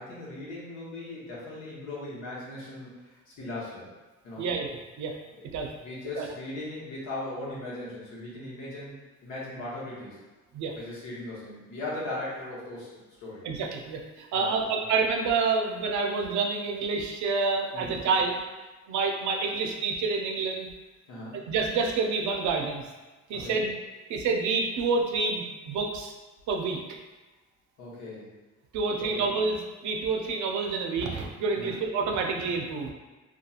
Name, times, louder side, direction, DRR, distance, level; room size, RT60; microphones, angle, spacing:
voice 1, 0.0-3.9 4.2-4.4 5.3-8.9 9.2-10.2 10.8-12.9 13.2-13.4 14.3-14.6 17.7-18.0 21.1-21.4 23.3-23.6 27.8-28.3 29.0-29.2 31.5-31.8, left 2 dB, 85° left, -6 dB, 1.0 m, -38 dB
voice 2, 4.4-5.2 5.5-5.7 6.2-6.3 10.5-10.7 13.4-18.4 18.9-20.7 21.5-22.8 23.3-23.7 24.1-26.1 26.5-26.8 28.7-32.9, right 4 dB, 70° right, 2 dB, 0.5 m, -28 dB
2.8 x 2.3 x 2.3 m, 1.2 s
cardioid pair, 90°, 30 cm